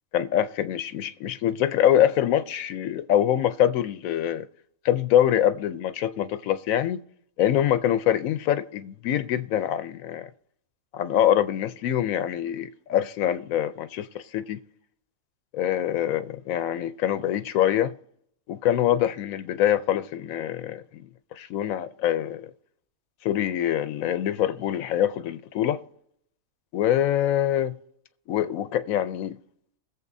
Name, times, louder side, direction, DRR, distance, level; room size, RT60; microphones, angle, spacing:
voice 1, 0.1-4.5 4.8-7.0 7.4-10.3 10.9-14.6 15.5-17.9 18.5-21.0 21.4-22.5 23.2-25.8 26.7-27.8 28.3-29.3, left 11 dB, 80° left, 1.0 m, -24 dB
21.0 x 7.3 x 2.6 m
omnidirectional pair, 1.4 m